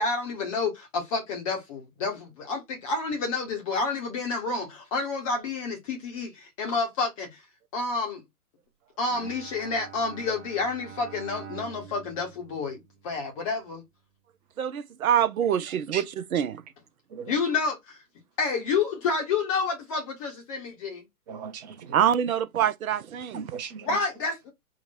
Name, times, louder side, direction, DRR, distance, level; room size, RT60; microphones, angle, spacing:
voice 1, 0.0-7.4 7.7-8.2 9.0-13.8 17.3-18.0 18.4-21.0 23.9-24.5, left 4 dB, 25° left, 0.7 m, -29 dB
Bowed string instrument, 9.1-13.5, right 7 dB, 45° right, 1.0 m, -46 dB
voice 2, 14.6-16.0 16.3-16.6 21.9-23.4, right 9 dB, 65° right, 0.6 m, -25 dB
voice 3, 17.1-17.4 21.3-22.0 23.3-24.0, right 7 dB, 30° right, 0.7 m, -38 dB
3.8 x 2.1 x 4.1 m
figure-of-eight pair, 120°, 45 cm